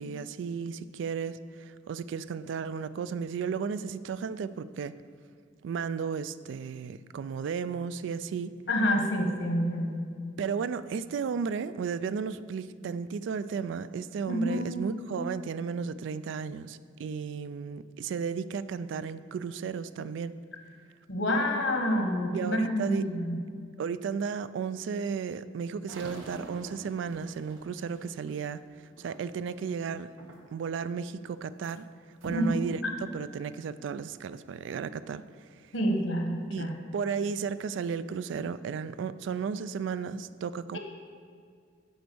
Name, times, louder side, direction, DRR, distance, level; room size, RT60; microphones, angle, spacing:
voice 1, 0.0-5.0 5.6-8.5 10.4-20.3 22.2-23.1 23.8-28.6 29.0-30.1 30.5-31.9 32.2-35.2 36.5-40.8, right 6 dB, 65° right, 15 dB, 0.3 m, -34 dB
voice 2, 8.7-10.0 14.3-14.8 21.1-23.4 32.3-32.5 35.7-36.8 40.7-40.8, equal, 70° left, 3 dB, 1.2 m, -28 dB
sound 1, 25.9-29.6 30.2-30.7 31.1-31.8 32.2-32.5 33.2-33.3 34.0-34.1 36.6-36.7 37.2-37.8, right 2 dB, 80° right, 1.0 m, -46 dB
7.9 x 5.1 x 6.9 m, 2.1 s
head